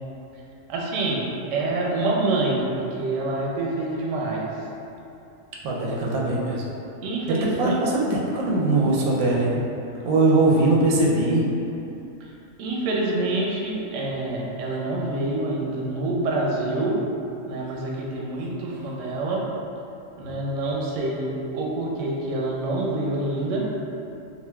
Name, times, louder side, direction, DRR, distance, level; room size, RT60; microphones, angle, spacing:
voice 1, 0.7-4.5 5.8-6.0 7.0-7.7 12.2-12.3 12.6-17.0 17.5-19.5 20.2-23.7, right 2 dB, 70° right, -3 dB, 0.8 m, -26 dB
voice 2, 5.6-6.6 7.3-9.6 10.0-11.5 20.3-20.4, right 2 dB, 90° right, -4 dB, 1.1 m, -21 dB
3.7 x 2.5 x 2.2 m, 2.8 s
omnidirectional pair, 1.5 m